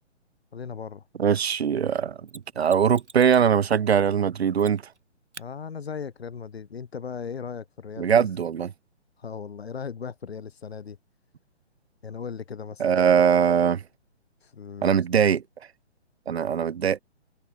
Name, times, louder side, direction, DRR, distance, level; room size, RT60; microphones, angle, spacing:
voice 1, 0.5-1.1 5.4-8.3 9.2-11.0 12.0-12.9 14.4-15.4, left 6 dB, 60° left, 3.2 m, -37 dB
voice 2, 1.2-2.2 2.6-4.8 8.0-8.7 12.8-13.8 14.8-15.4 16.3-17.0, right 7 dB, 65° right, 0.8 m, -21 dB
Mechanisms, 2.3-3.5 4.6-5.0 5.3-5.5 8.2-8.3, right 3 dB, 80° right, 3.7 m, -47 dB
figure-of-eight pair, 135°, 35 cm